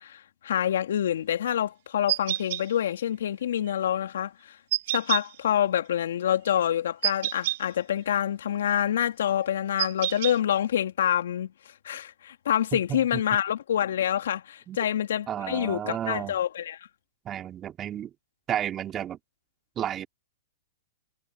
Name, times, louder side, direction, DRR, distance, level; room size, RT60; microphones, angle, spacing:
voice 1, 0.0-4.6 4.9-11.5 11.8-16.8, left 10 dB, 75° left, 3.1 m, -27 dB
sound 1, 2.1-2.6 4.7-5.2 7.0-7.6 9.8-10.3, right 15 dB, 60° right, 3.6 m, -27 dB
voice 2, 12.7-13.2 14.7-14.8 15.3-16.4 17.2-18.1 18.5-19.2 19.8-20.1, right 10 dB, 25° right, 3.2 m, -32 dB
hypercardioid pair, 120°, 0 cm